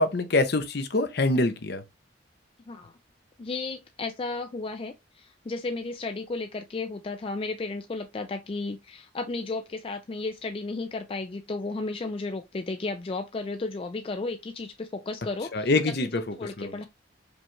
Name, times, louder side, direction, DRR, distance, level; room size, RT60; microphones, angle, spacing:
voice 1, 0.0-1.8 15.5-16.7, left 2 dB, 55° left, 0.7 m, -25 dB
voice 2, 3.4-16.9, left 3 dB, 30° left, 0.3 m, -34 dB
5.1 x 2.3 x 3.0 m
head